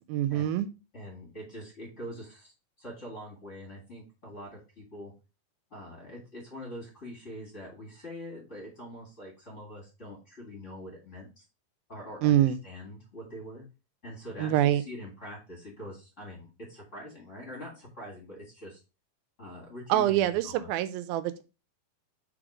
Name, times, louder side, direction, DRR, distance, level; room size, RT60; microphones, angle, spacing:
voice 1, 0.1-0.7 12.2-12.6 14.4-14.8 19.9-21.4, right 12 dB, 80° right, 12 dB, 2.4 m, -25 dB
voice 2, 0.9-2.5 2.8-5.1 5.7-11.4 11.9-12.4 12.6-13.6 14.0-18.8 19.4-20.7, equal, 25° left, -1 dB, 1.9 m, -44 dB
5.1 x 4.6 x 4.8 m, 0.29 s
omnidirectional pair, 4.4 m